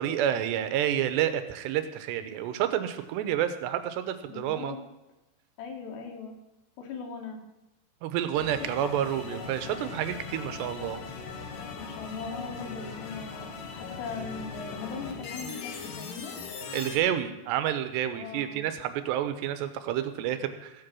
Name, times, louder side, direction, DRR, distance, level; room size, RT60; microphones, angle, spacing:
voice 1, 0.0-4.8 8.0-11.0 16.7-20.7, right 11 dB, 90° right, 10 dB, 3.0 m, -29 dB
voice 2, 4.3-4.8 5.6-6.3 6.8-7.4 11.4-16.4 18.1-18.6, left 5 dB, 85° left, 1 dB, 4.1 m, -39 dB
sound 1, 8.3-17.0, left 5 dB, 60° left, 2.6 m, -40 dB
15.5 x 7.8 x 6.2 m, 0.97 s
omnidirectional pair, 4.8 m